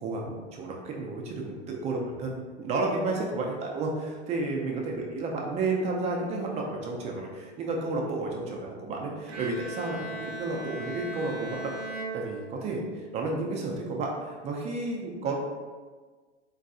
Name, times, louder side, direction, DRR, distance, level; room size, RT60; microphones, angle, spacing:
voice 1, 0.0-11.7 12.1-15.3, right 3 dB, 20° right, 0 dB, 0.4 m, -32 dB
Bowed string instrument, 9.3-13.0, right 3 dB, 70° right, 0.7 m, -38 dB
3.9 x 2.5 x 2.3 m, 1.4 s
hypercardioid pair, 100°, 35 cm